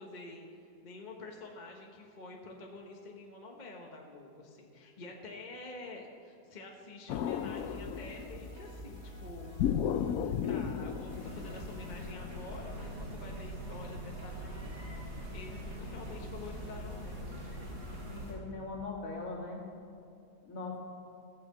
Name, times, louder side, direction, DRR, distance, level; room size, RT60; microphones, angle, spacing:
voice 1, 0.0-9.6 10.2-14.8 15.3-17.4, left 2 dB, 30° left, 0 dB, 1.1 m, -48 dB
sound 1, 7.1-8.6 9.6-12.0, left 8 dB, 70° left, 0.9 m, -34 dB
sound 2, 7.5-18.3, right 1 dB, 45° right, 1.6 m, -47 dB
sound 3, 11.1-18.3, left 1 dB, 70° right, 3.7 m, -44 dB
voice 2, 18.1-19.6 20.4-20.8, left 3 dB, 55° left, -1 dB, 2.4 m, -40 dB
15.5 x 6.5 x 7.5 m, 2.4 s
omnidirectional pair, 1.8 m